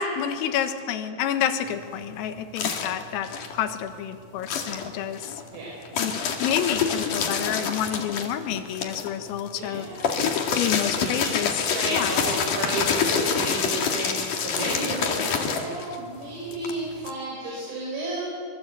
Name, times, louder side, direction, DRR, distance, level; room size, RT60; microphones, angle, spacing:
voice 1, 0.0-5.3 6.0-9.9 10.5-11.5 11.9-12.1, left 9 dB, 90° left, 8 dB, 4.1 m, -29 dB
sound 1, 1.7-4.0 4.4-17.1, left 6 dB, 50° left, 2.7 m, -27 dB
voice 2, 9.5-10.1 11.0-11.3 11.7-18.2, right 2 dB, 85° right, -3 dB, 8.2 m, -32 dB
25.5 x 23.5 x 8.3 m, 2.1 s
omnidirectional pair, 5.9 m